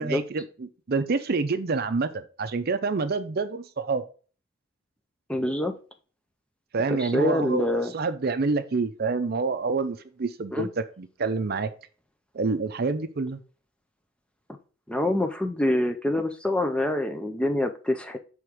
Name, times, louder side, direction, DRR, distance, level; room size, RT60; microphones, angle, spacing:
voice 1, 0.0-4.0 6.7-7.7 7.9-10.7 11.0-11.7 12.3-13.4, right 4 dB, 50° right, 11 dB, 0.5 m, -27 dB
voice 2, 5.3-5.8 6.9-7.9 10.5-10.7 14.9-18.2, left 1 dB, 5° left, 6 dB, 0.4 m, -26 dB
6.1 x 3.5 x 4.9 m, 0.38 s
head